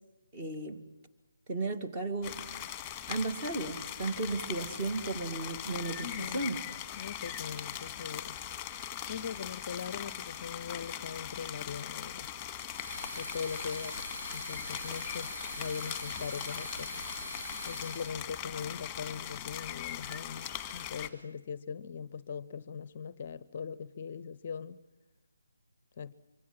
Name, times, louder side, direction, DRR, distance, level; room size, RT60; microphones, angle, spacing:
voice 1, 0.3-0.8 1.5-2.4 3.1-6.6, right 2 dB, 20° right, 2.2 m, -34 dB
sound 1, 2.2-21.1, left 10 dB, 10° left, 1.8 m, -41 dB
voice 2, 6.0-8.4 9.1-12.3 13.1-14.0 14.3-17.0 17.7-24.8 26.0-26.1, left 6 dB, 35° left, 0.8 m, -41 dB
sound 2, 12.7-18.2, equal, 90° right, 4.1 m, -42 dB
25.0 x 25.0 x 7.5 m
figure-of-eight pair, 150°, 0 cm